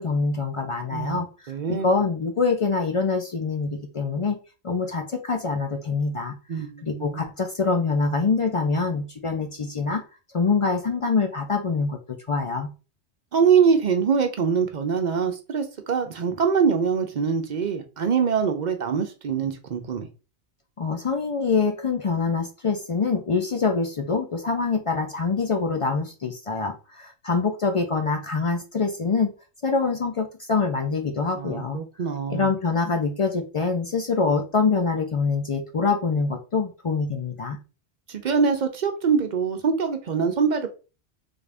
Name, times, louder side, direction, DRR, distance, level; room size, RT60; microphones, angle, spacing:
voice 1, 0.0-4.4 4.6-10.0 10.3-12.0 12.3-12.7 20.8-29.3 29.6-31.8 32.3-37.6, left 4 dB, 60° left, 4 dB, 0.3 m, -25 dB
voice 2, 0.9-1.9 6.5-7.2 13.3-20.1 31.4-32.5 38.1-40.7, right 6 dB, 55° right, 6 dB, 0.6 m, -24 dB
3.5 x 2.5 x 3.3 m, 0.32 s
omnidirectional pair, 1.2 m